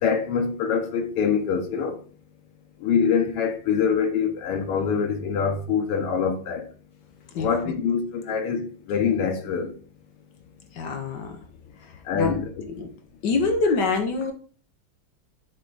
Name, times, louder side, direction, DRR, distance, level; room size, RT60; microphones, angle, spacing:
voice 1, 0.0-2.0 2.8-6.6 7.4-9.7 12.1-12.5, left 6 dB, 90° left, 1.9 m, -24 dB
voice 2, 7.3-7.7 10.7-11.4 11.8-12.3 12.8-12.9 13.2-14.3, left 4 dB, 60° left, 1.3 m, -25 dB
7.9 x 3.4 x 3.9 m
omnidirectional pair, 2.4 m